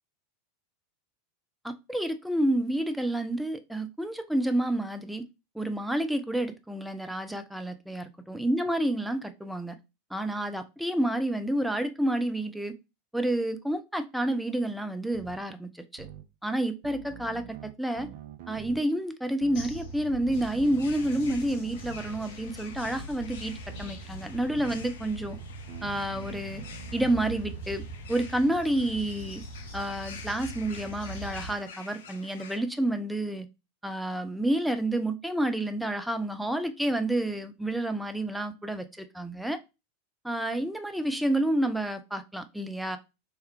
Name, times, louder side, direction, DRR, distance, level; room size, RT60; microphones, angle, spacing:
voice 1, 1.6-5.2 5.5-9.8 10.1-12.7 13.1-16.1 16.4-18.1 18.5-25.4 25.8-26.6 26.9-27.8 28.1-29.4 29.7-33.5 33.8-39.6 40.2-43.0, right 1 dB, ahead, 0.4 m, -29 dB
sound 1, 15.1-15.4 16.0-16.2 16.8-18.8 19.4-19.7 20.3-22.2 22.8-23.1 23.7-24.0 24.5-24.8 25.2-28.0, right 9 dB, 50° right, 0.5 m, -45 dB
sound 2, 19.5-31.5, right 1 dB, 40° left, 1.9 m, -42 dB
sound 3, 20.4-32.6, left 6 dB, 60° left, 0.6 m, -49 dB
3.5 x 3.2 x 2.9 m
figure-of-eight pair, 85°, 0 cm